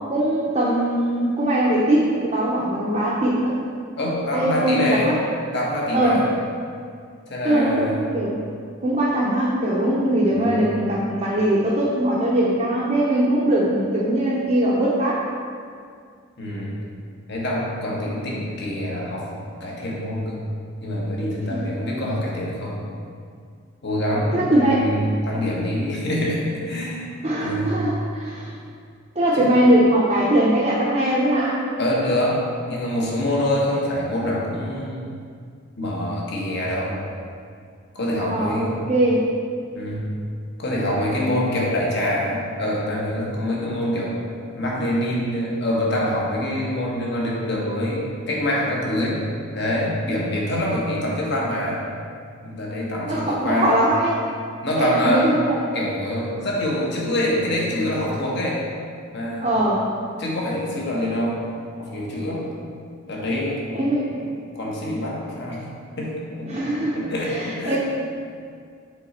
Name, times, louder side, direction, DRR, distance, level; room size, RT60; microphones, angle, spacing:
voice 1, 0.1-3.5 4.3-5.2 5.9-6.3 7.4-8.4 8.8-15.3 24.3-24.8 27.2-28.5 29.2-31.6 38.2-39.3 53.1-54.2 54.8-55.6 59.4-59.9 63.7-64.1 66.5-67.8, right 1 dB, 30° right, -7 dB, 0.7 m, -21 dB
voice 2, 4.0-5.1 5.5-6.3 7.3-8.0 10.2-10.7 16.4-16.8 17.3-19.3 19.6-20.4 20.8-22.8 23.8-27.0 27.4-27.7 29.3-29.5 31.8-32.4 32.7-35.1 35.8-37.0 37.9-38.7 39.7-40.1 40.6-44.1 44.6-49.2 49.5-51.8 52.4-53.8 54.6-55.3 55.7-58.6 59.1-59.5 60.2-61.4 61.8-62.5 63.1-64.3 64.5-65.6 66.0-67.8, left 1 dB, 55° left, -4 dB, 1.2 m, -25 dB
6.5 x 3.8 x 4.3 m, 2.2 s
head